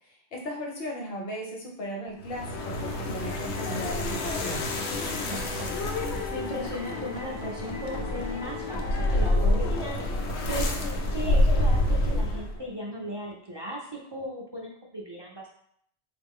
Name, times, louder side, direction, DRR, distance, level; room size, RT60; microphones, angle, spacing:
voice 1, 0.0-4.7, equal, 65° left, 0 dB, 1.1 m, -37 dB
Hammer, 2.1-12.0 13.3-13.4, right 3 dB, 60° right, 0.8 m, -44 dB
sound 1, 2.2-12.6, left 1 dB, 90° left, 0.9 m, -28 dB
sound 2, 2.5-11.4, left 3 dB, 45° left, 0.6 m, -40 dB
voice 2, 5.0-5.8 6.0-10.0 10.4-10.7 11.1-15.5, equal, 40° right, -3 dB, 0.4 m, -37 dB
3.9 x 2.5 x 3.6 m, 0.67 s
omnidirectional pair, 1.1 m